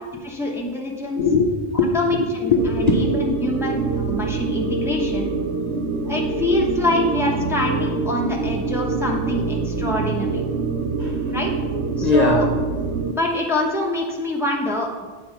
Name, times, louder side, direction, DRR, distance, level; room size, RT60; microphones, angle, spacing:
voice 1, 0.2-1.3 1.9-5.3 6.1-10.4 11.3-11.5 12.0-12.5 13.1-15.1, left 2 dB, ahead, -1 dB, 0.9 m, -25 dB
voice 2, 1.2-3.0 11.0-11.3 12.0-12.4, left 3 dB, 40° left, -1 dB, 0.7 m, -20 dB
sound 1, 2.6-13.1, right 4 dB, 65° right, 0.8 m, -25 dB
8.5 x 4.3 x 5.8 m, 1.4 s
omnidirectional pair, 1.3 m